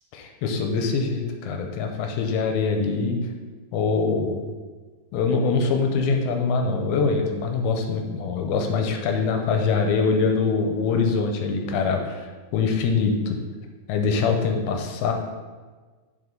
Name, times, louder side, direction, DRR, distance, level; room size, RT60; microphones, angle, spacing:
voice 1, 0.1-3.2 3.7-4.5 5.1-12.2 12.5-13.4 13.9-15.1, left 4 dB, 85° left, 4 dB, 2.5 m, -23 dB
7.9 x 5.0 x 3.8 m, 1.4 s
omnidirectional pair, 4.3 m